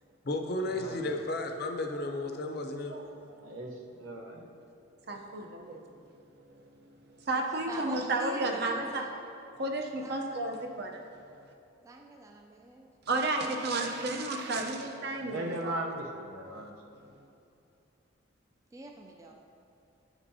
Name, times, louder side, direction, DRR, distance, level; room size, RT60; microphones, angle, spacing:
voice 1, 0.2-3.3, left 2 dB, 50° left, 4 dB, 0.5 m, -34 dB
voice 2, 3.4-4.5 15.2-16.8, right 1 dB, 85° right, 1 dB, 0.8 m, -38 dB
voice 3, 5.1-5.8 6.4-6.6 7.2-9.0 9.6-11.0 13.1-15.7 16.5-16.6, right 2 dB, 50° right, 3 dB, 0.6 m, -32 dB
voice 4, 7.3-9.1 10.0-10.2 11.8-12.9 18.7-19.3, right 2 dB, 15° right, 1 dB, 0.3 m, -45 dB
9.3 x 5.9 x 2.7 m, 2.7 s
head